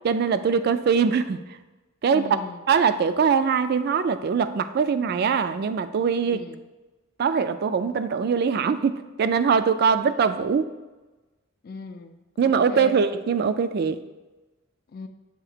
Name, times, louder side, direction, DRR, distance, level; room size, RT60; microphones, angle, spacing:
voice 1, 0.0-1.4 2.0-2.4 2.7-6.4 7.2-10.7 12.4-14.0, right 6 dB, 50° right, 12 dB, 0.3 m, -22 dB
voice 2, 2.1-2.6 6.2-6.6 11.6-13.0 14.9-15.1, left 3 dB, 50° left, 7 dB, 0.4 m, -38 dB
7.3 x 2.8 x 5.0 m, 1.2 s
head